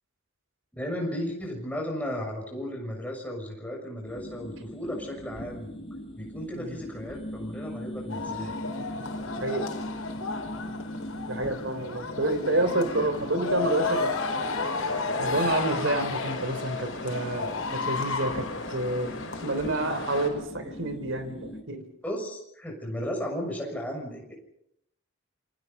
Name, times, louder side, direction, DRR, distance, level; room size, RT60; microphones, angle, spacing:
voice 1, 0.7-5.8 6.1-8.5 22.0-24.4, equal, 5° left, 0 dB, 6.5 m, -35 dB
sound 1, 4.1-21.6, left 1 dB, 25° left, 3.3 m, -40 dB
sound 2, 8.1-20.2, left 3 dB, 80° left, 4.1 m, -33 dB
voice 2, 11.3-14.1 15.2-21.8, right 1 dB, 60° right, 10 dB, 3.4 m, -29 dB
sound 3, 13.6-20.3, left 3 dB, 60° left, 6.7 m, -39 dB
28.0 x 24.0 x 5.5 m, 0.77 s
head